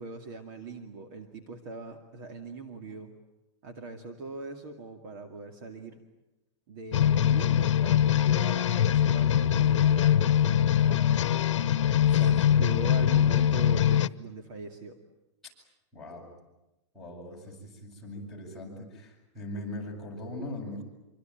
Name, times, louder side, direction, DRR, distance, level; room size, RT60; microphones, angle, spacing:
voice 1, 0.0-3.1 3.6-6.0 6.7-11.8 12.1-15.0, right 3 dB, 40° right, 5 dB, 2.4 m, -41 dB
sound 1, 6.9-14.1, left 10 dB, 85° left, 0.9 m, -23 dB
voice 2, 8.2-8.8 12.1-12.6 15.9-16.3 16.9-20.8, left 1 dB, ahead, -7 dB, 8.0 m, -41 dB
27.0 x 24.5 x 9.1 m, 0.97 s
supercardioid pair, 165°, 15 cm